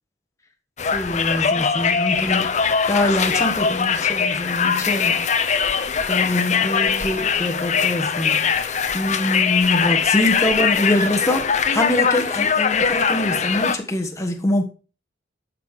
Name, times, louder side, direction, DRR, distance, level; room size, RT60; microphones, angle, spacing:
Conversation, 0.8-13.8, left 6 dB, 40° left, 0.8 m, -21 dB
voice 1, 0.9-5.5 6.1-8.7 8.9-14.6, left 1 dB, 15° left, 1.4 m, -24 dB
11.5 x 6.4 x 5.0 m
head